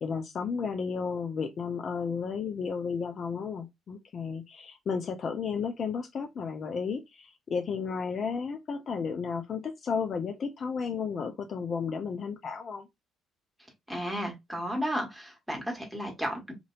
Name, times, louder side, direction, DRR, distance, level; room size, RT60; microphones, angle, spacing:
voice 1, 0.0-12.9, left 5 dB, 45° left, 0.4 m, -33 dB
voice 2, 13.9-16.5, equal, 5° right, 1.3 m, -33 dB
2.9 x 2.6 x 2.4 m
figure-of-eight pair, 45°, 0 cm